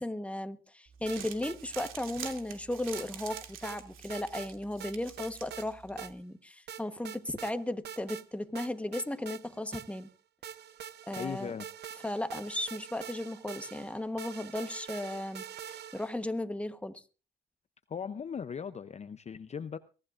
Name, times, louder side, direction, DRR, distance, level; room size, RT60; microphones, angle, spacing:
voice 1, 0.0-10.1 11.1-11.5 12.0-15.4 15.9-17.0, left 1 dB, 5° left, 1.1 m, -36 dB
Crumpling crinkling, 0.9-6.1, right 8 dB, 85° right, 2.6 m, -47 dB
sound 1, 1.1-1.9 2.2-2.4 2.9-3.8 4.1-4.5 4.8-5.7 6.0-6.1 6.7-7.5 7.8-8.3 8.6-10.1 10.4-16.2, right 9 dB, 55° right, 0.8 m, -44 dB
voice 2, 11.2-11.7 17.9-19.8, left 7 dB, 35° left, 0.6 m, -38 dB
23.0 x 14.0 x 2.5 m
cardioid pair, 90°, 20 cm